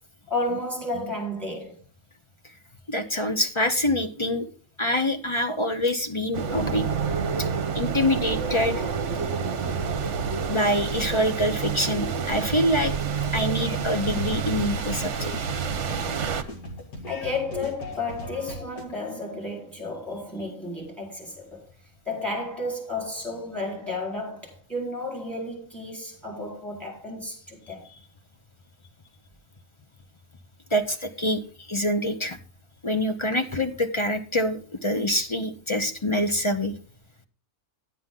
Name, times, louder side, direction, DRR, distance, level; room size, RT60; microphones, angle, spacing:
voice 1, 0.3-1.8 17.0-21.6 22.1-27.8, left 2 dB, ahead, 4.3 m, -32 dB
voice 2, 2.9-4.4 4.8-6.9 7.7-8.8 10.5-12.9 13.3-15.3 30.7-31.4 31.7-32.4 32.8-36.7, left 1 dB, 30° left, 0.6 m, -25 dB
sound 1, 6.3-16.4, right 6 dB, 55° right, 1.1 m, -28 dB
sound 2, 13.2-18.8, left 1 dB, 75° left, 2.4 m, -39 dB
10.5 x 9.3 x 3.7 m
omnidirectional pair, 1.6 m